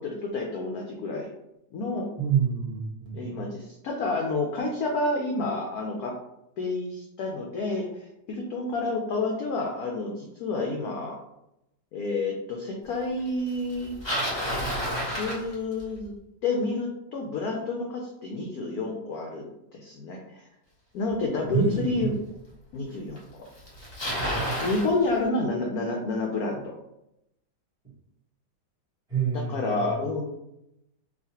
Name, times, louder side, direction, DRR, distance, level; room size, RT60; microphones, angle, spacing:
voice 1, 0.0-1.3 1.7-2.1 3.1-6.1 6.6-11.2 11.9-13.9 15.1-16.1 16.4-19.4 19.7-20.4 20.9-22.2 22.7-23.4 24.6-26.7 29.3-30.2, left 2 dB, 80° left, 0 dB, 0.8 m, -29 dB
voice 2, 2.2-3.5 21.4-22.1 24.2-24.4 29.1-29.8, right 6 dB, 5° right, -7 dB, 0.7 m, -28 dB
Bicycle, 13.7-16.0 21.1-21.2 22.0-22.1 23.2-23.3 23.5-24.9, equal, 30° left, 0.5 m, -30 dB
4.0 x 2.5 x 2.8 m, 0.84 s
omnidirectional pair, 2.2 m